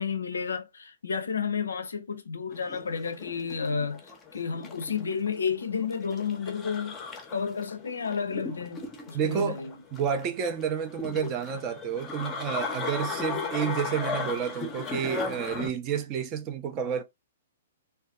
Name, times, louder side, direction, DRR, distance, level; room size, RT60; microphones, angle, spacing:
voice 1, 0.0-7.0 7.3-9.8, left 6 dB, 70° left, 0.4 m, -31 dB
sound 1, 2.5-15.7, left 4 dB, 20° left, 0.6 m, -37 dB
voice 2, 9.1-9.6 9.9-17.0, right 7 dB, 30° right, 0.5 m, -30 dB
2.5 x 2.2 x 2.2 m
figure-of-eight pair, 115°, 0 cm